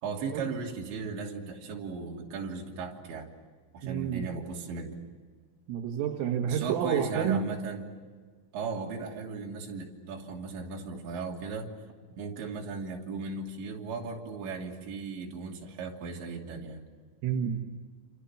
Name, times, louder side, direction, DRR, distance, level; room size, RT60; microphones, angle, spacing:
voice 1, 0.0-3.3 3.7-5.0 6.4-7.9 8.5-11.7 12.2-16.8, right 4 dB, 65° right, 0 dB, 5.1 m, -37 dB
voice 2, 3.8-4.2 5.7-7.5 17.2-17.6, right 8 dB, 85° right, 2 dB, 4.3 m, -29 dB
29.0 x 28.0 x 7.2 m, 1.5 s
omnidirectional pair, 5.7 m